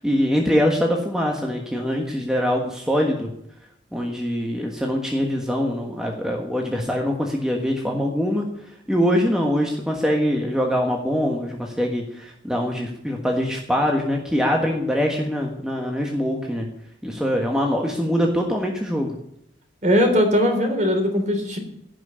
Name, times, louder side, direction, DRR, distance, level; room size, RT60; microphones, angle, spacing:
voice 1, 0.0-3.3 3.9-16.7 17.0-19.1, equal, 5° right, 0 dB, 1.4 m, -23 dB
voice 2, 19.8-21.6, equal, 40° right, 3 dB, 3.5 m, -19 dB
16.0 x 6.2 x 10.0 m, 0.78 s
head